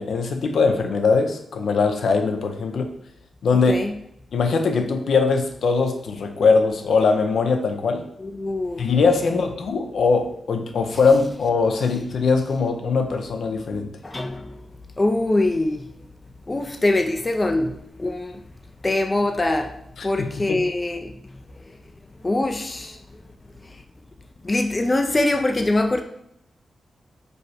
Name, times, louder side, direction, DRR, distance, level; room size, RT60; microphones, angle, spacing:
voice 1, 0.0-2.9 3.4-3.8 4.3-8.1 8.8-13.9 20.0-20.6, left 4 dB, 75° left, 0.6 m, -21 dB
voice 2, 3.5-4.0 8.2-8.9 9.2-9.4 14.0-14.6 15.0-15.9 16.5-18.4 18.8-19.8 20.0-21.6 22.2-23.0 23.6-23.8 24.4-26.0, left 2 dB, 20° left, 0.3 m, -23 dB
5.1 x 2.1 x 4.8 m
wide cardioid pair, 155°, 0 cm